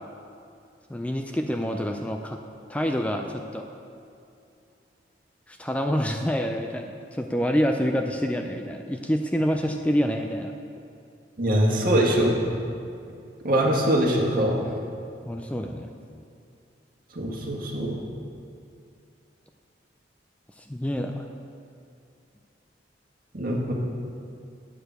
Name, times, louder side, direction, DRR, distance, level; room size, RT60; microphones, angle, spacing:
voice 1, 0.9-2.4 2.7-3.6 5.5-10.5 15.3-16.2 20.6-21.3, equal, 5° left, 4 dB, 0.4 m, -27 dB
voice 2, 11.4-12.3 13.4-14.7 17.1-18.0 23.3-23.7, right 1 dB, 50° right, -1 dB, 1.7 m, -23 dB
8.9 x 6.7 x 7.9 m, 2.5 s
head